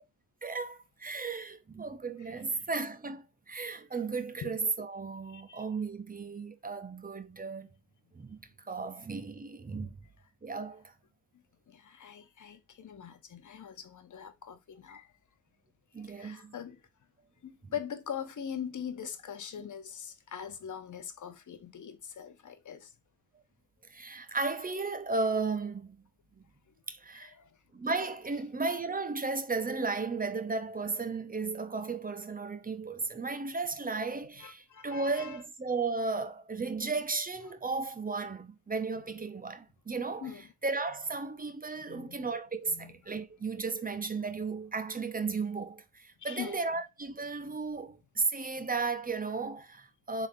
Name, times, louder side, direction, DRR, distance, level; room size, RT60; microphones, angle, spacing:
voice 1, 0.4-7.7 8.1-9.9 10.4-10.8 15.9-16.5 17.6-17.7 19.5-19.6 23.9-26.0 26.9-27.3 27.7-50.3, right 4 dB, 20° right, 0.7 m, -35 dB
voice 2, 5.3-5.6 11.7-15.1 16.0-16.8 17.4-22.9 27.1-27.5 34.4-35.4 40.2-40.4 41.8-42.2 42.7-42.9 46.2-46.6, left 8 dB, 40° left, 0.8 m, -42 dB
3.6 x 3.6 x 2.7 m
supercardioid pair, 55°, 49 cm